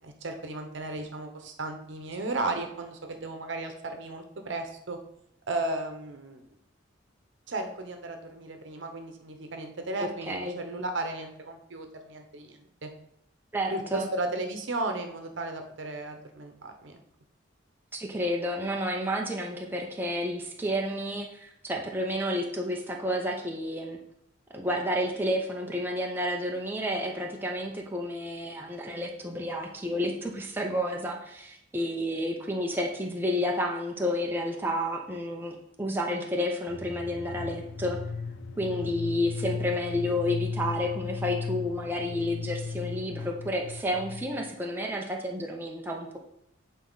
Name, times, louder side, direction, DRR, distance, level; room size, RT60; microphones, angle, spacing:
voice 1, 0.0-5.0 5.5-6.4 7.5-12.9 13.7-17.0 38.6-38.8, right 2 dB, 75° right, 5 dB, 0.9 m, -35 dB
voice 2, 10.0-10.5 13.5-14.1 17.9-24.0 24.5-38.0 38.6-46.2, equal, 10° right, 0 dB, 0.7 m, -30 dB
sound 1, 36.7-44.5, left 4 dB, 75° left, 0.5 m, -36 dB
8.1 x 4.1 x 3.9 m, 0.75 s
head